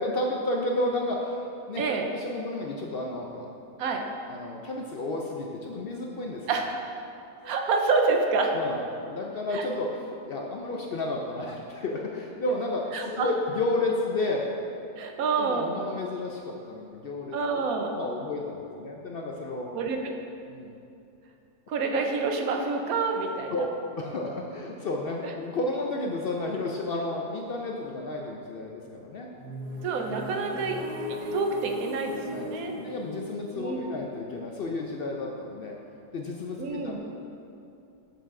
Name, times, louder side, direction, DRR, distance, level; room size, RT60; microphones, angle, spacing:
voice 1, 0.0-3.5 4.3-6.5 7.4-7.5 8.5-14.5 15.4-17.6 18.0-19.7 20.5-20.7 23.5-23.7 24.0-29.3 30.1-30.2 32.2-35.8 36.1-37.0, left 2 dB, 75° left, 0 dB, 0.5 m, -32 dB
voice 2, 7.4-8.5 9.5-9.7 12.9-13.3 15.0-15.7 17.3-17.9 19.7-20.1 21.7-23.7 25.2-25.3 29.8-30.8 31.3-32.8 33.5-33.9 36.6-37.0, right 4 dB, 70° right, 3 dB, 1.1 m, -27 dB
sound 1, 29.4-35.2, left 1 dB, 85° right, 1.6 m, -38 dB
7.9 x 6.9 x 3.7 m, 2.6 s
omnidirectional pair, 1.7 m